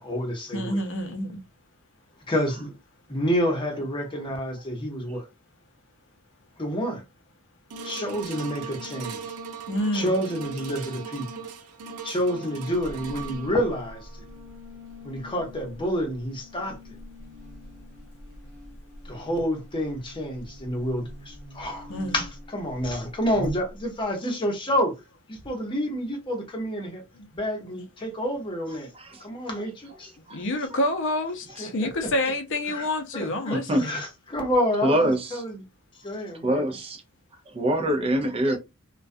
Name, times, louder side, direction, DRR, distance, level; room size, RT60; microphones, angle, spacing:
voice 1, 0.0-0.8 2.3-2.7 3.1-5.2 6.6-7.0 7.8-9.2 9.9-11.3 12.0-14.2 15.0-17.0 19.0-24.9 25.3-27.0 27.3-28.9 29.2-30.1 31.6-32.1 32.7-32.9 33.1-35.6 36.0-36.6, equal, 20° left, 0.7 m, -29 dB
voice 2, 0.5-1.4 9.7-10.2 21.9-22.2 27.1-27.3 27.7-27.8 30.3-34.0, left 1 dB, 60° left, 0.6 m, -28 dB
sound 1, 7.7-18.1 18.7-18.8, right 3 dB, 85° right, 0.5 m, -40 dB
Buzz, 12.7-24.1, right 1 dB, 55° right, 0.9 m, -43 dB
voice 3, 28.9-29.3 30.3-30.4 33.5-33.9 34.8-35.4 36.4-37.0 37.5-38.6, right 1 dB, 25° right, 0.4 m, -25 dB
2.2 x 2.2 x 2.5 m
head